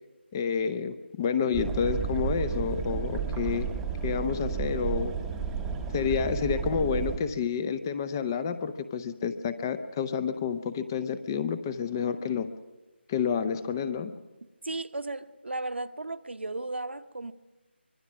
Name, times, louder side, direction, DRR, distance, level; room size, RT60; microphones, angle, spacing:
voice 1, 0.3-3.7 4.0-5.1 5.9-12.5 13.1-14.1, left 6 dB, 20° left, 0.7 m, -29 dB
sound 1, 1.5-7.2, right 6 dB, 5° right, 1.0 m, -32 dB
voice 2, 14.6-17.3, right 2 dB, 70° right, 1.1 m, -35 dB
24.5 x 21.5 x 6.2 m
figure-of-eight pair, 160°, 6 cm